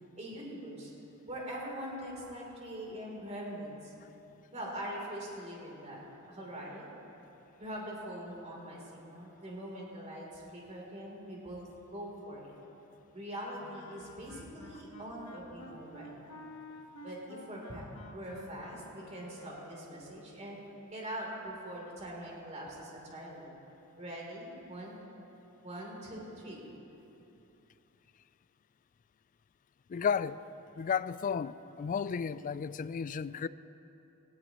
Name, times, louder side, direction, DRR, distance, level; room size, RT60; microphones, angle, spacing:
voice 1, 0.2-0.9 1.3-3.9 4.5-6.0 6.3-6.9 7.6-12.5 13.1-16.3 17.0-17.8 18.1-20.6 20.9-23.5 24.0-25.0 25.6-26.6, equal, 35° right, -3 dB, 3.4 m, -43 dB
Wind instrument woodwind instrument, 13.6-20.0, left 1 dB, 70° left, 1.3 m, -51 dB
voice 2, 29.9-30.4 30.8-33.5, left 6 dB, 40° left, 16 dB, 0.3 m, -33 dB
19.0 x 16.0 x 3.0 m, 2.9 s
head